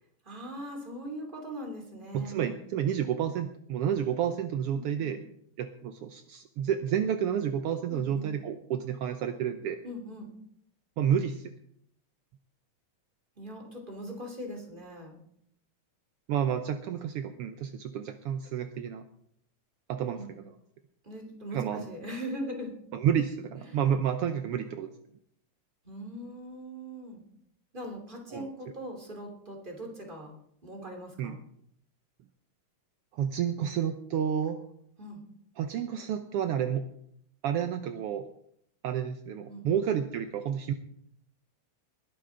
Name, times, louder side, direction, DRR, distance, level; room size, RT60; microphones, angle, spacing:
voice 1, 0.2-2.6 4.7-5.1 7.9-8.3 9.8-10.3 13.4-15.1 20.1-20.3 21.0-22.7 23.6-23.8 25.8-27.2 27.7-30.3 30.6-31.4 35.0-35.2 39.5-39.8, equal, 15° right, 1 dB, 2.8 m, -40 dB
voice 2, 2.1-5.2 5.6-9.8 11.0-11.5 16.3-19.0 19.9-20.5 21.5-21.9 22.9-24.9 28.3-28.5 31.2-31.3 33.1-34.6 35.6-36.9 37.4-38.3 38.8-40.7, right 8 dB, 75° right, 8 dB, 1.3 m, -30 dB
20.5 x 11.5 x 3.8 m, 0.71 s
omnidirectional pair, 3.5 m